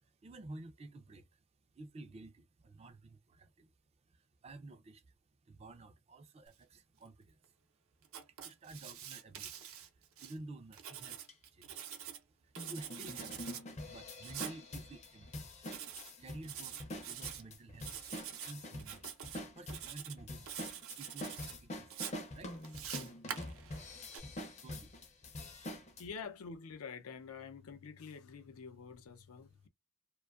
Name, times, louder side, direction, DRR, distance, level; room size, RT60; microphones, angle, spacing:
voice 1, 0.0-1.4 1.7-3.7 4.0-5.1 5.5-7.5 8.3-11.8 12.3-15.5 15.8-17.9 18.4-20.6 21.0-22.0 22.3-22.6 24.6-25.1, right 2 dB, 30° right, 0.3 m, -52 dB
Writing, 8.0-10.3 10.7-12.2 12.5-13.6 14.2-14.6 15.7-16.1 16.4-17.4 17.8-18.5 18.8-19.4 19.7-20.2 20.5-21.5 21.9-24.2, right 9 dB, 80° right, 0.6 m, -45 dB
sound 1, 11.3-11.4 11.9-12.0 12.6-26.0, left 1 dB, 30° left, 0.5 m, -46 dB
voice 2, 26.0-29.7, left 5 dB, 90° left, 0.5 m, -47 dB
2.5 x 2.3 x 2.3 m
head